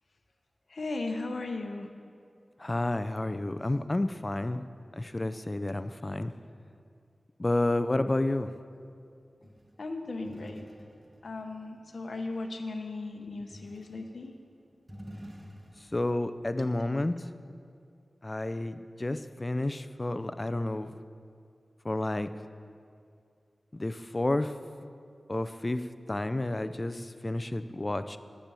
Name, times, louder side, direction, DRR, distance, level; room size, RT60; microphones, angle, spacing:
voice 1, 0.7-1.9 9.8-10.7 11.2-14.3, left 3 dB, 70° left, 4 dB, 0.8 m, -36 dB
voice 2, 2.6-4.7 4.9-6.3 7.4-8.5 15.9-17.1 18.2-20.9 21.8-22.3 23.8-24.5 25.3-28.2, left 2 dB, 30° left, 11 dB, 0.4 m, -30 dB
sound 1, 9.4-12.6 13.5-14.2 14.6-16.1, equal, 20° right, 1.1 m, -49 dB
10.0 x 7.5 x 6.9 m, 2.3 s
wide cardioid pair, 80°, 0 cm